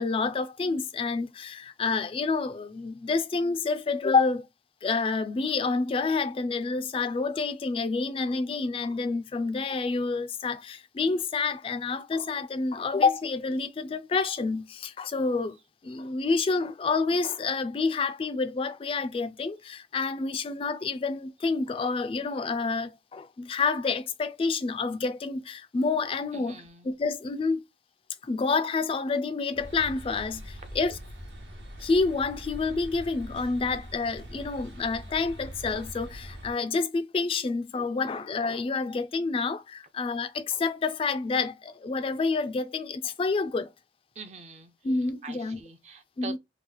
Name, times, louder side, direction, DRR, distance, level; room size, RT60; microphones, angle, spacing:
voice 1, 0.0-4.5 4.8-15.6 15.8-27.6 28.2-31.0 31.8-43.7 44.8-45.6 46.2-46.4, left 4 dB, 30° left, 0.3 m, -28 dB
voice 2, 26.3-26.9 44.2-44.7 45.2-46.4, right 4 dB, 40° right, 0.5 m, -43 dB
sound 1, 29.5-36.5, equal, 85° right, 1.1 m, -43 dB
3.0 x 2.3 x 3.8 m
head